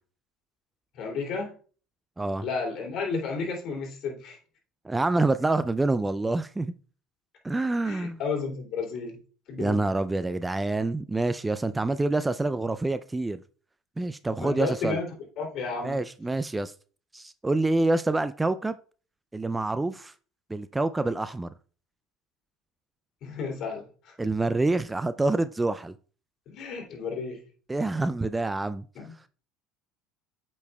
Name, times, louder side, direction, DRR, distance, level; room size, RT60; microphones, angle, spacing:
voice 1, 0.9-1.5 2.4-4.4 7.8-9.2 9.5-9.8 14.4-15.0 15.4-16.0 23.2-24.1 26.5-27.4 28.9-29.1, left 4 dB, 55° left, 2.8 m, -32 dB
voice 2, 4.8-6.7 7.4-8.2 9.6-13.4 14.0-15.0 15.8-16.7 17.1-18.8 19.3-20.1 20.5-21.5 24.2-25.9 27.7-28.9, right 2 dB, 15° right, 0.3 m, -27 dB
8.1 x 5.3 x 2.3 m
supercardioid pair, 90°, 0 cm